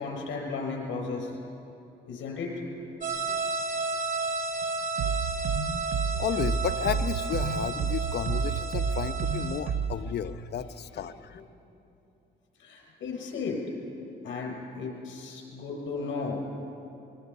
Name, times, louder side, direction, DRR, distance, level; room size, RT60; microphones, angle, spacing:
voice 1, 0.0-1.4 2.1-2.6 11.0-11.1 12.6-13.6 14.2-16.5, left 4 dB, 75° left, 0 dB, 6.5 m, -34 dB
sound 1, 3.0-9.6, right 3 dB, 40° right, 3.3 m, -32 dB
sound 2, 5.0-10.0, right 6 dB, 80° right, 0.9 m, -30 dB
voice 2, 6.2-11.4, left 8 dB, 55° left, 10 dB, 0.9 m, -33 dB
24.0 x 22.5 x 5.6 m, 2.9 s
cardioid pair, 90°, 20 cm